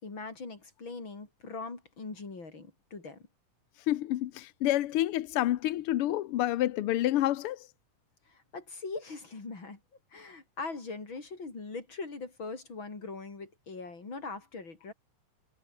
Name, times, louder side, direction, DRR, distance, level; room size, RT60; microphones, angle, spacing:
voice 1, 0.0-3.2 8.3-9.8 10.1-14.9, left 3 dB, 40° left, 5.3 m, -41 dB
voice 2, 3.9-7.7, left 14 dB, 70° left, 1.4 m, -28 dB
omnidirectional pair, 3.3 m